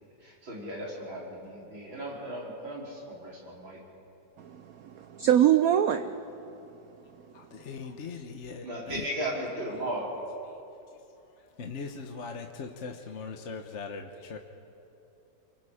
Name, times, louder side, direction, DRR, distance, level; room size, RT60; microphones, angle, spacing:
voice 1, 0.2-3.8 8.6-10.1, right 1 dB, 90° right, -5 dB, 5.4 m, -36 dB
voice 2, 4.4-6.1, right 11 dB, 65° right, 9 dB, 0.9 m, -24 dB
voice 3, 7.5-9.1 11.6-14.4, left 5 dB, 45° left, 4 dB, 1.2 m, -40 dB
28.0 x 23.5 x 5.0 m, 2.8 s
omnidirectional pair, 2.1 m